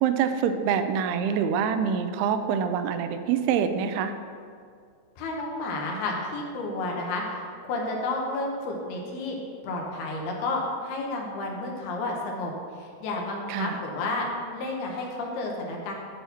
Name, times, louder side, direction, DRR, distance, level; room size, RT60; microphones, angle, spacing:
voice 1, 0.0-4.1 13.5-13.8, right 7 dB, 90° right, 9 dB, 2.6 m, -25 dB
voice 2, 5.2-9.4 9.6-14.3 14.5-15.9, left 2 dB, 80° left, 0 dB, 3.0 m, -31 dB
8.7 x 4.2 x 7.0 m, 2.2 s
omnidirectional pair, 4.5 m